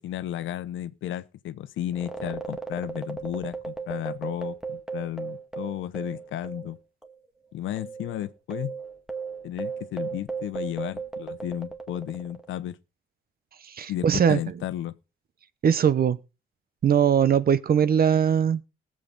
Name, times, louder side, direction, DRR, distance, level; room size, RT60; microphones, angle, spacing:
voice 1, 0.0-6.8 7.5-8.7 9.4-12.8 13.9-15.0, left 12 dB, 80° left, 0.9 m, -33 dB
sound 1, 1.9-6.8 7.0-7.1 7.8-12.5, right 5 dB, 5° right, 2.0 m, -36 dB
voice 2, 13.6-14.4 15.6-16.2 16.8-18.6, right 8 dB, 50° right, 0.9 m, -21 dB
19.0 x 7.7 x 4.1 m
cardioid pair, 90°, 20 cm